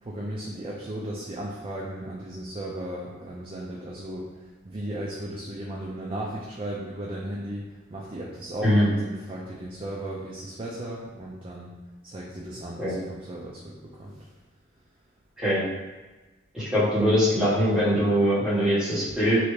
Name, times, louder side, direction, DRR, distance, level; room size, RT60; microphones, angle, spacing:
voice 1, 0.0-4.3 4.6-11.8 12.0-14.3, right 1 dB, 25° right, -3 dB, 0.4 m, -35 dB
voice 2, 16.5-19.4, equal, 5° right, -11 dB, 1.3 m, -22 dB
3.2 x 2.7 x 3.2 m, 1.2 s
head